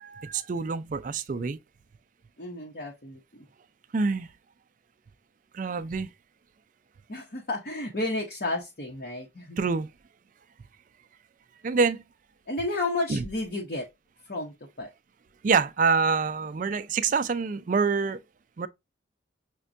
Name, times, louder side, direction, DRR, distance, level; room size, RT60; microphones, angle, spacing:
voice 1, 0.0-1.6 3.9-4.3 5.5-6.1 9.6-9.9 11.6-12.0 13.1-13.2 15.4-18.2 18.6-18.7, right 5 dB, 40° right, 0.3 m, -26 dB
voice 2, 2.4-3.5 7.1-9.6 12.5-13.9 14.2-14.9, left 2 dB, 50° left, 0.7 m, -32 dB
6.0 x 2.2 x 2.5 m
head